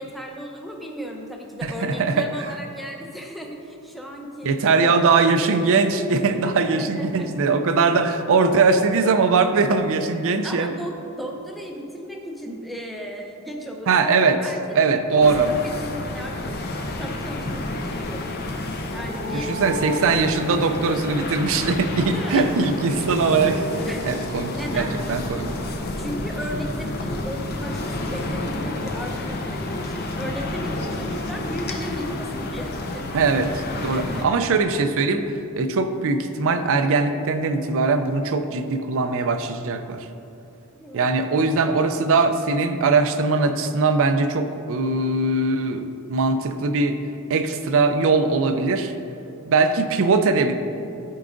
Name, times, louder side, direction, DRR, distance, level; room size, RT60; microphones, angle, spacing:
voice 1, 0.0-5.0 6.7-7.5 10.4-14.8 15.2-18.4 18.9-19.7 22.1-22.5 22.9-23.1 23.8-24.1 24.5-25.0 26.0-33.1 33.9-34.3 40.8-41.1 49.5-49.6, equal, ahead, 0 dB, 0.6 m, -36 dB
voice 2, 1.6-2.3 4.4-10.7 13.9-14.4 14.8-15.6 19.3-23.7 24.0-25.5 33.1-35.2 35.6-40.1 40.9-47.0 47.3-48.9 49.5-50.5, right 4 dB, 65° right, 9 dB, 0.5 m, -21 dB
sound 1, 15.2-34.3, left 2 dB, 45° left, 0.6 m, -30 dB
13.0 x 4.6 x 2.6 m, 2.7 s
head